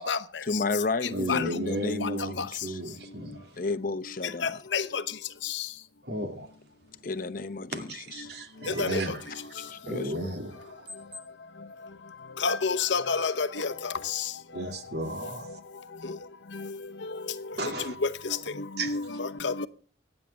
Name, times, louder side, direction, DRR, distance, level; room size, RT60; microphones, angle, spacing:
voice 1, 0.4-2.8 3.5-4.6 7.0-8.3 9.7-10.3, left 3 dB, 50° left, 0.8 m, -32 dB
voice 2, 1.1-3.5 6.0-6.5 7.7-10.9 14.5-15.6 17.6-18.0 18.8-19.0, right 1 dB, 65° right, 2.3 m, -34 dB
voice 3, 12.4-14.2 17.6-17.7 18.0-18.1 18.6-19.7, left 5 dB, 85° left, 0.9 m, -28 dB
25.5 x 9.2 x 3.4 m
head